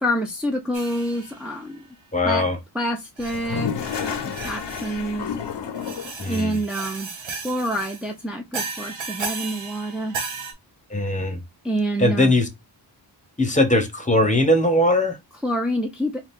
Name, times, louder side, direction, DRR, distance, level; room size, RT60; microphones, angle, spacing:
voice 1, 0.0-1.9 2.2-2.4 2.7-3.7 4.0-5.3 6.3-7.1 7.4-10.2 11.6-12.3 15.4-16.1, equal, ahead, 0.7 m, -27 dB
sound 1, 0.7-1.6 2.4-2.5 3.2-3.4 3.8-5.1 5.7-8.1 8.5-10.5, right 4 dB, 85° right, 1.2 m, -34 dB
voice 2, 2.1-2.6 6.2-6.6 10.9-11.4 12.0-12.5 13.4-15.2, left 1 dB, 15° left, 1.1 m, -20 dB
Toilet flush, 3.2-6.3, left 7 dB, 65° left, 0.8 m, -30 dB
4.0 x 2.4 x 3.6 m
cardioid pair, 70°, 45 cm